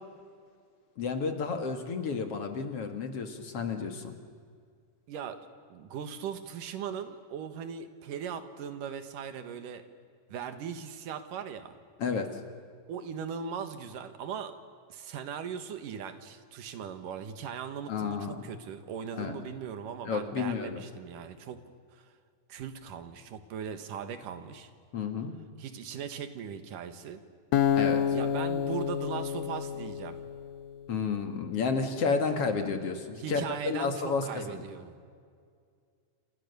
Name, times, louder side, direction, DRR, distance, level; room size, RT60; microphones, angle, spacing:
voice 1, 1.0-4.2 12.0-12.3 17.9-18.5 19.1-19.4 20.0-20.8 24.9-25.3 27.8-28.0 30.9-34.6, left 5 dB, 50° left, 6 dB, 2.5 m, -31 dB
voice 2, 5.1-5.4 5.7-9.8 10.3-11.8 12.9-14.5 14.9-21.6 21.9-22.1 22.5-24.7 25.6-27.2 28.1-30.2 33.2-35.1, right 7 dB, 80° right, 9 dB, 3.1 m, -39 dB
Acoustic guitar, 27.5-30.7, left 8 dB, 70° left, 1.9 m, -29 dB
29.5 x 28.0 x 6.9 m, 2.1 s
omnidirectional pair, 3.8 m